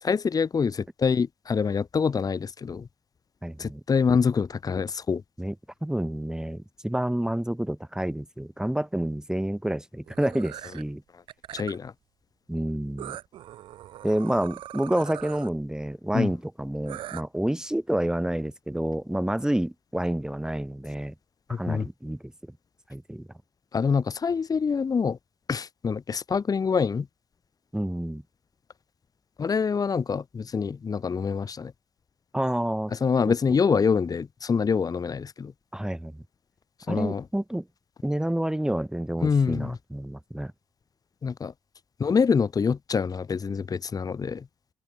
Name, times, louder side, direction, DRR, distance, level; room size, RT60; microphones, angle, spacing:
voice 1, 0.1-2.9 3.6-5.2 11.5-11.9 16.1-16.3 21.5-21.9 23.7-25.2 25.5-27.1 29.4-31.7 32.9-35.5 36.9-37.2 39.2-39.8 41.2-41.5 42.0-44.4, left 5 dB, 40° left, 1.3 m, -25 dB
voice 2, 3.4-3.8 5.4-5.5 5.8-11.0 12.5-13.2 14.0-21.1 21.6-22.3 22.9-23.3 27.7-28.2 32.3-32.9 33.3-33.4 35.7-36.2 36.9-37.7 38.0-40.5, right 1 dB, 5° right, 2.0 m, -29 dB
sound 1, 10.1-10.8 11.3-11.9 13.0-15.5 16.9-17.2, right 12 dB, 65° right, 0.7 m, -41 dB
hypercardioid pair, 40°, 9 cm